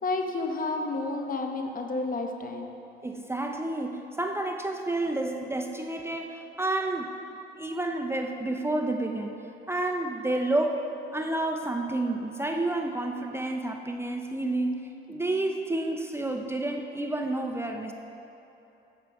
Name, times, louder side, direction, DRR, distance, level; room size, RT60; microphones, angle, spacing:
voice 1, 0.0-2.8, left 3 dB, 45° left, 4 dB, 0.9 m, -31 dB
voice 2, 3.0-7.2 7.6-9.4 9.7-17.9, right 2 dB, 10° right, 3 dB, 0.5 m, -30 dB
9.5 x 7.2 x 4.6 m, 3.0 s
cardioid pair, 90°, 20 cm